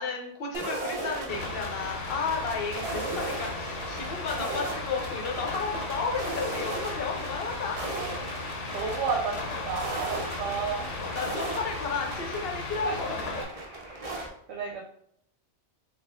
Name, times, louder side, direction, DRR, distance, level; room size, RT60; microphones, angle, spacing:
voice 1, 0.0-7.8 11.0-13.5, left 4 dB, 55° left, 1 dB, 0.9 m, -33 dB
sound 1, 0.5-14.3, right 2 dB, 40° right, 0.6 m, -37 dB
sound 2, 1.3-13.4, left 3 dB, 85° left, 1.1 m, -36 dB
sound 3, 2.7-14.2, equal, 25° left, 1.2 m, -51 dB
voice 2, 8.6-10.9 12.8-13.4 13.9-14.1 14.5-14.8, right 5 dB, 75° right, 0 dB, 0.9 m, -32 dB
4.1 x 2.4 x 3.5 m, 0.70 s
omnidirectional pair, 1.2 m